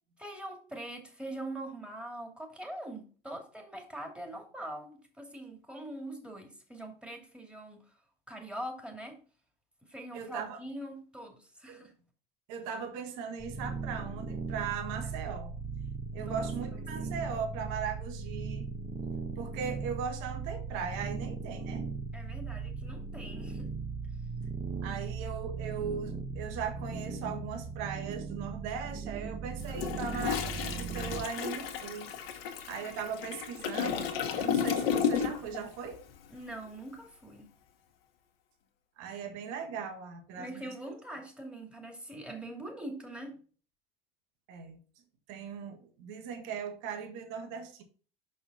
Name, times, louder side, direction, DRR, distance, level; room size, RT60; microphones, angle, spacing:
voice 1, 0.2-4.9 5.2-7.8 8.3-9.2 9.8-11.9 16.1-16.7 17.0-17.5 22.1-23.7 36.3-37.5 40.4-43.3, right 1 dB, 5° right, 2.5 m, -43 dB
voice 2, 10.1-10.6 11.7-11.8 12.5-15.5 16.1-18.7 19.3-21.9 24.8-32.1 32.7-36.0 39.0-40.7 44.5-44.8 45.3-47.8, right 6 dB, 65° right, 1.7 m, -38 dB
sound 1, 13.4-31.3, right 5 dB, 20° right, 1.1 m, -38 dB
Toilet flush, 29.6-35.6 35.9-36.1, left 8 dB, 80° left, 1.3 m, -33 dB
6.2 x 5.6 x 4.2 m
hypercardioid pair, 85°, 29 cm